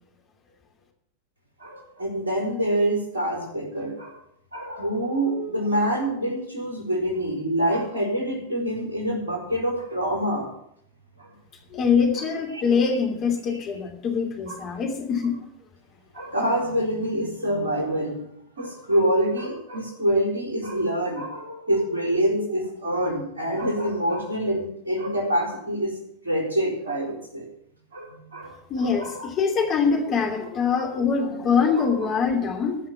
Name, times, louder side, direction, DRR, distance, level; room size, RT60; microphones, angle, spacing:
voice 1, 1.6-4.1 4.5-10.5 11.2-11.3 12.1-12.2 12.5-12.6 14.5-14.6 16.1-18.3 18.6-25.9 26.2-27.5 27.9-29.3 31.8-31.9, right 1 dB, 75° right, 0 dB, 4.1 m, -26 dB
voice 2, 11.7-15.4 28.7-32.8, left 5 dB, 30° left, 2 dB, 2.8 m, -23 dB
15.0 x 5.8 x 9.3 m, 0.72 s
figure-of-eight pair, 90°, 0 cm